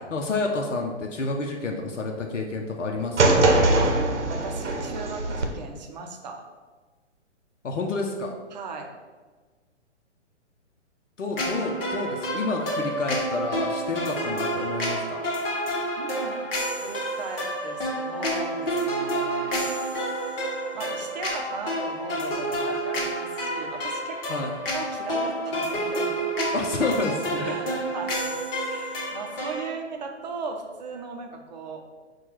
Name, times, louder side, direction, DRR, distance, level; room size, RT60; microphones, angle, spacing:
voice 1, 0.1-3.4 7.6-8.3 11.2-15.2 24.3-24.6 26.5-27.6, left 3 dB, 85° left, 1 dB, 0.6 m, -29 dB
sound 1, 3.2-5.5, right 2 dB, 70° right, 0.8 m, -21 dB
voice 2, 4.3-6.4 8.5-8.9 16.0-16.4 16.8-19.7 20.7-24.4 24.7-26.1 27.4-28.4 28.6-31.8, right 4 dB, 35° right, 3 dB, 0.6 m, -37 dB
sound 2, 11.3-29.7, right 1 dB, 50° left, 1.1 m, -29 dB
4.4 x 2.3 x 4.5 m, 1.4 s
figure-of-eight pair, 125°, 36 cm